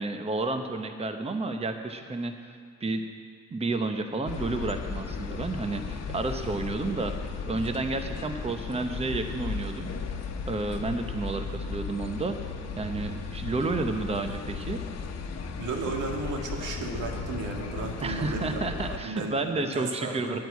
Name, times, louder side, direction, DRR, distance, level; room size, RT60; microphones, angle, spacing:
voice 1, 0.0-3.0 3.5-7.1 7.5-9.9 10.5-12.4 12.8-14.8 18.0-20.4, right 3 dB, 20° right, 6 dB, 0.9 m, -31 dB
sound 1, 4.2-19.0, left 5 dB, 55° left, 1.2 m, -35 dB
voice 2, 15.6-18.6 19.0-20.4, right 3 dB, 85° right, 1 dB, 1.9 m, -34 dB
9.7 x 9.2 x 8.2 m, 2.1 s
cardioid pair, 90°, 30 cm